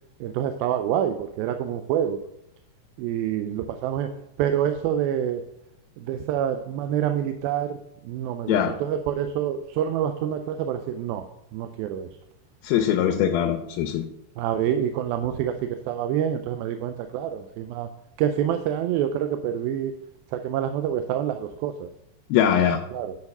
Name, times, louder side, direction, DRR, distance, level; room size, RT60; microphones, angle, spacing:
voice 1, 0.2-2.2 3.0-4.1 4.4-5.4 6.0-11.2 11.5-12.1 14.4-17.9 18.2-19.9 20.3-21.9 22.9-23.2, right 10 dB, 90° right, 8 dB, 2.4 m, -27 dB
voice 2, 12.6-14.1 22.3-22.8, left 9 dB, 90° left, 5 dB, 2.5 m, -22 dB
9.4 x 4.8 x 5.3 m, 0.79 s
omnidirectional pair, 4.1 m